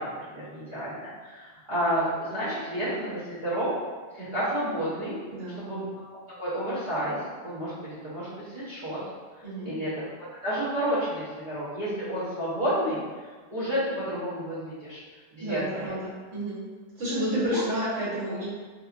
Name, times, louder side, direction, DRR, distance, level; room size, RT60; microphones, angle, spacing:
voice 1, 0.0-3.7 4.1-5.1 5.6-5.8 6.4-9.0 9.6-9.9 10.4-13.0 13.5-15.0 15.3-15.9 17.5-17.6, equal, 45° right, -14 dB, 0.8 m, -30 dB
voice 2, 5.3-5.7 9.4-9.7 15.4-16.6 17.0-18.5, equal, 75° right, -9 dB, 1.4 m, -30 dB
2.7 x 2.3 x 2.4 m, 1.5 s
omnidirectional pair, 1.2 m